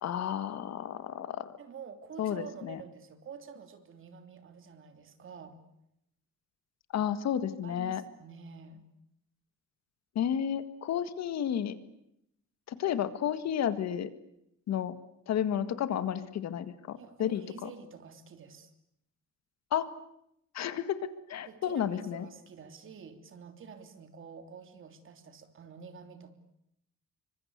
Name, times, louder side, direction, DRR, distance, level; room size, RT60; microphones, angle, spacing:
voice 1, 0.0-1.5 2.2-2.8 6.9-8.0 10.2-11.8 12.7-14.1 14.7-15.0 15.3-17.7 19.7-19.9 20.5-22.3, left 9 dB, 65° left, 12 dB, 1.9 m, -32 dB
voice 2, 1.6-5.6 7.6-8.8 17.0-18.7 21.5-26.3, right 6 dB, 45° right, 8 dB, 3.3 m, -48 dB
29.0 x 25.0 x 8.2 m, 0.77 s
cardioid pair, 175°, 29 cm